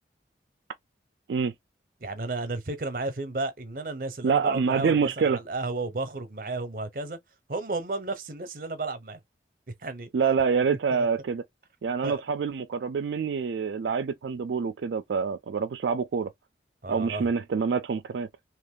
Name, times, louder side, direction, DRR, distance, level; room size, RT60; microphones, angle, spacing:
voice 1, 2.0-7.2 7.5-9.2 9.8-10.1 10.9-11.1 12.0-12.2 16.8-17.3, right 2 dB, 50° right, 0.7 m, -33 dB
voice 2, 4.2-5.4 10.1-11.4 11.8-16.3 16.9-18.3, right 5 dB, 80° right, 0.4 m, -26 dB
2.9 x 2.5 x 3.6 m
head